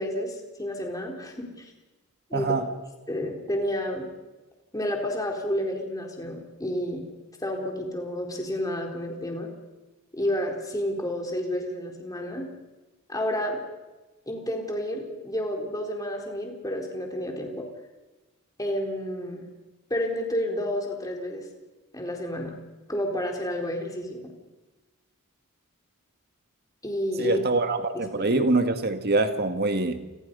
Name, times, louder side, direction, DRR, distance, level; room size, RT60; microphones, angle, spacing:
voice 1, 0.0-1.7 2.3-2.6 3.1-4.1 4.7-7.0 7.4-9.5 10.1-12.5 13.1-13.6 14.3-17.7 18.6-19.4 19.9-21.4 21.9-22.5 22.9-24.3 26.8-27.4 27.9-28.3, equal, 15° left, 4.1 m, -30 dB
voice 2, 2.3-2.7 27.2-30.0, right 2 dB, 45° right, 2.0 m, -24 dB
30.0 x 26.0 x 5.6 m
head